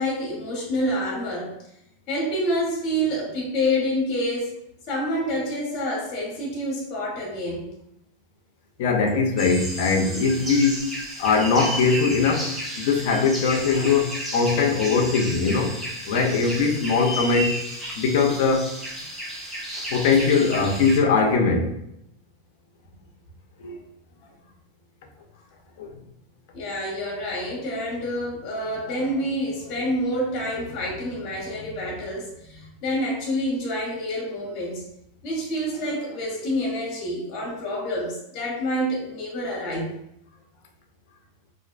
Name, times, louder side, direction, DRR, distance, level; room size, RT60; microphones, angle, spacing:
voice 1, 0.0-1.6 2.1-4.6 4.9-7.7 19.7-19.9 26.5-34.8 35.2-40.0, equal, 40° left, 0.9 m, -27 dB
voice 2, 8.8-10.9 11.2-12.5 12.8-15.8 16.1-17.6 18.0-18.7 19.9-21.7 23.6-23.8 25.8-25.9, left 4 dB, 60° left, 0.4 m, -21 dB
sound 1, 9.4-21.0, right 1 dB, 5° right, 0.6 m, -33 dB
2.4 x 2.1 x 2.4 m
supercardioid pair, 145°, 0 cm